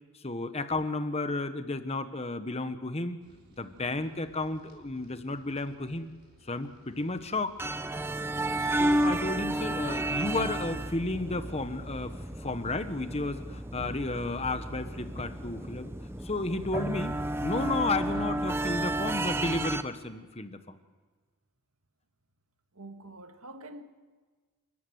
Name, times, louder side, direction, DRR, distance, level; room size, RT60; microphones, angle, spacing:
voice 1, 0.1-3.2 3.6-6.1 6.4-7.6 8.6-15.9 16.2-20.8, left 2 dB, 30° left, 1.3 m, -33 dB
sound 1, 3.2-10.9, equal, 50° right, 4.3 m, -59 dB
sound 2, 7.6-19.8, right 1 dB, 10° right, 0.7 m, -32 dB
voice 2, 22.7-23.8, right 2 dB, 85° right, 1.8 m, -45 dB
29.0 x 13.5 x 9.4 m
head